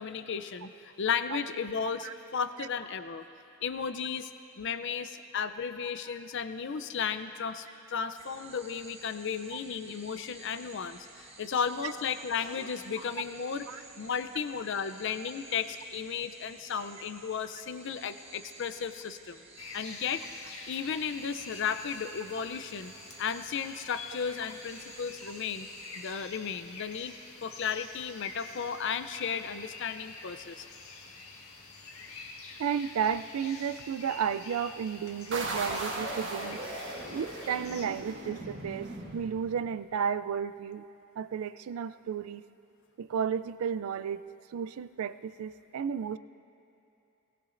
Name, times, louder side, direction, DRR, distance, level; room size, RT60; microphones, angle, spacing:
voice 1, 0.0-3.2 3.6-4.3 4.6-19.4 19.7-20.3 20.7-22.9 23.2-25.7 25.9-27.2 27.4-30.7, left 6 dB, 55° left, 11 dB, 0.5 m, -34 dB
sound 1, 8.2-26.1, right 3 dB, 30° right, 1.0 m, -53 dB
sound 2, 19.6-37.9, left 3 dB, 75° left, 1.6 m, -47 dB
voice 2, 32.6-36.6 37.1-40.8 41.2-42.4 43.0-46.2, right 7 dB, 80° right, 14 dB, 0.3 m, -33 dB
sound 3, 35.3-39.8, right 2 dB, 55° right, 1.5 m, -37 dB
19.5 x 18.5 x 2.5 m, 2.8 s
head